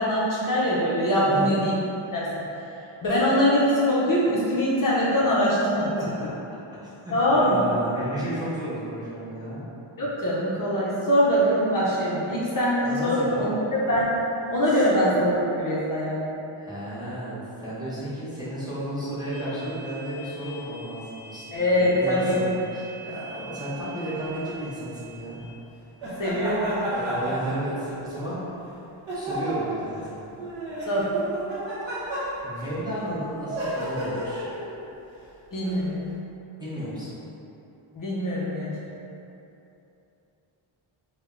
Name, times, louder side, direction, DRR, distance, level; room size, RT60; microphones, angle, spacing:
voice 1, 0.0-1.7 2.1-2.3 3.0-5.9 7.1-7.6 10.0-13.5 13.9-14.2 14.5-16.4 21.5-22.4 26.2-26.7 30.9-31.1 35.5-36.0 37.9-38.7, equal, 45° left, -7 dB, 0.6 m, -23 dB
voice 2, 1.3-1.7 5.2-5.3 5.8-6.3 6.8-9.6 12.8-13.5 14.7-14.8 16.5-21.5 22.0-25.4 26.9-28.5 29.1-30.3 31.8-32.2 32.4-34.5 36.6-37.2, right 1 dB, 10° right, -11 dB, 0.6 m, -33 dB
sound 1, 19.3-25.6, right 3 dB, 5° left, 0.9 m, -44 dB
sound 2, 24.2-24.6 26.0-28.1 29.1-29.9 30.4-32.6 33.5-34.7 35.6-35.8, right 1 dB, 65° right, 0.9 m, -32 dB
3.3 x 2.1 x 3.5 m, 2.9 s
wide cardioid pair, 150°, 49 cm